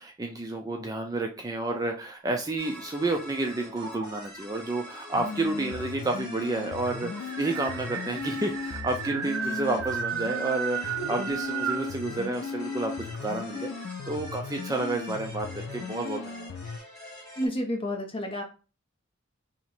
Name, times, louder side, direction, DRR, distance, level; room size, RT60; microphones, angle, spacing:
voice 1, 0.0-16.6, right 2 dB, 15° right, 3 dB, 0.3 m, -30 dB
sound 1, 1.8-3.3 3.8-4.4 5.4-5.5 5.8-5.9 6.2-12.0, right 8 dB, 90° right, 0.4 m, -35 dB
sound 2, 2.6-17.5, left 1 dB, ahead, 1.8 m, -45 dB
sound 3, 5.1-16.8, left 5 dB, 80° left, 0.4 m, -37 dB
voice 2, 17.4-18.4, equal, 25° left, 3 dB, 0.7 m, -30 dB
2.9 x 2.8 x 4.2 m, 0.34 s
head